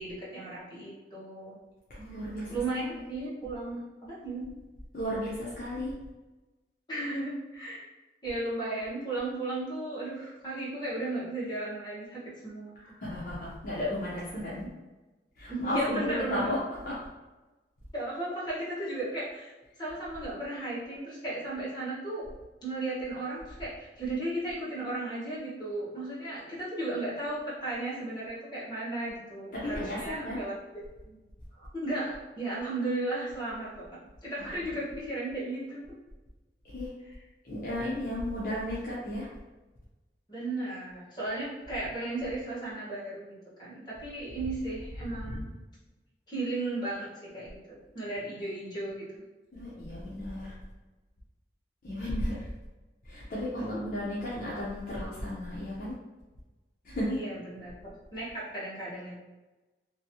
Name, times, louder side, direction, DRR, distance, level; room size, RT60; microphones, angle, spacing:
voice 1, 0.0-1.6 2.1-2.2 2.5-2.8 3.1-4.5 6.9-7.9 8.2-12.8 14.6-14.7 15.5-16.5 17.9-22.3 22.6-31.2 31.5-35.8 40.3-45.5 46.3-49.2 52.1-52.3 53.6-53.9 57.1-59.2, right 2 dB, 25° left, -9 dB, 1.2 m, -35 dB
voice 2, 1.9-2.6 4.9-5.9 12.8-14.6 15.4-16.6 29.5-30.4 36.7-36.9 37.4-39.3 45.2-45.4 49.5-50.5 51.8-52.5 53.1-55.9 56.8-57.2, left 1 dB, 50° left, -8 dB, 0.7 m, -34 dB
3.0 x 2.6 x 2.8 m, 1.1 s
head